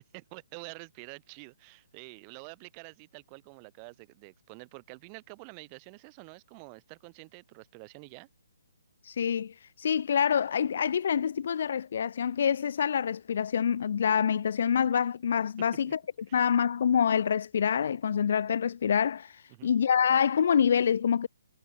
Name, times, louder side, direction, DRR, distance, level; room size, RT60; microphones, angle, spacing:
voice 1, 0.0-8.3 15.9-16.0 16.3-16.5 19.5-19.7, right 38 dB, 15° right, 2.7 m, -48 dB
voice 2, 9.0-15.9 16.3-21.3, left 7 dB, 45° left, 0.4 m, -26 dB
hypercardioid pair, 175°, 0 cm